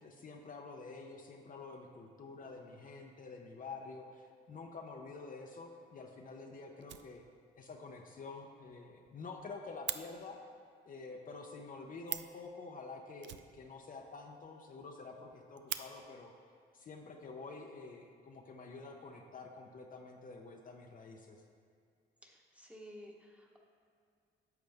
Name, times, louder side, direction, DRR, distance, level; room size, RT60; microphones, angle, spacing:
voice 1, 0.0-7.2 7.6-10.4 10.9-16.3 16.7-21.4, left 3 dB, 45° left, 2 dB, 0.7 m, -48 dB
Fire, 6.8-7.6 7.9-8.0 8.4-8.5 8.7-8.8 9.1-10.0 11.8-11.9 12.0-12.4 13.2-14.1 14.4-14.5 14.8-14.9 15.3-15.8 16.8-17.0 17.6-18.2, right 11 dB, 65° right, 0.4 m, -43 dB
voice 2, 22.2-23.6, equal, 5° right, 0 dB, 1.2 m, -53 dB
10.5 x 6.6 x 3.5 m, 2.3 s
cardioid pair, 90°, 20 cm